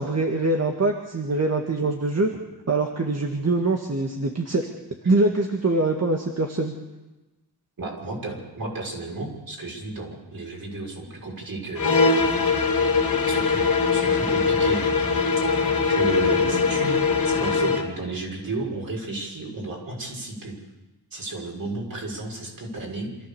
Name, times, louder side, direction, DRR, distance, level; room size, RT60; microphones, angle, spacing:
voice 1, 0.0-2.3 2.7-4.6 5.0-6.7, right 2 dB, 40° right, 2 dB, 2.0 m, -23 dB
voice 2, 7.8-12.7 13.2-13.6 13.9-14.8 15.9-17.0 17.2-20.5 21.1-23.1, right 2 dB, 55° right, -1 dB, 6.6 m, -33 dB
sound 1, 11.8-17.9, left 4 dB, 55° left, 3.7 m, -21 dB
27.0 x 14.5 x 7.0 m, 1.1 s
wide cardioid pair, 105°, 41 cm